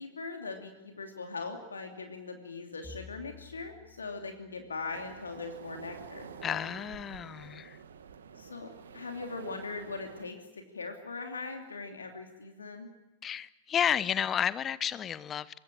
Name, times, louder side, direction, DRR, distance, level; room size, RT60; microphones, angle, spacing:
voice 1, 0.0-6.3 8.4-12.9, left 4 dB, 75° left, 4 dB, 2.8 m, -40 dB
Bowed string instrument, 2.8-7.2, left 5 dB, 5° left, 2.1 m, -55 dB
sound 1, 4.9-10.3, right 6 dB, 65° right, 2.0 m, -48 dB
voice 2, 6.4-7.8 13.2-15.6, left 9 dB, 25° left, 19 dB, 0.9 m, -31 dB
25.0 x 21.5 x 8.7 m, 1.0 s
figure-of-eight pair, 90°, 0 cm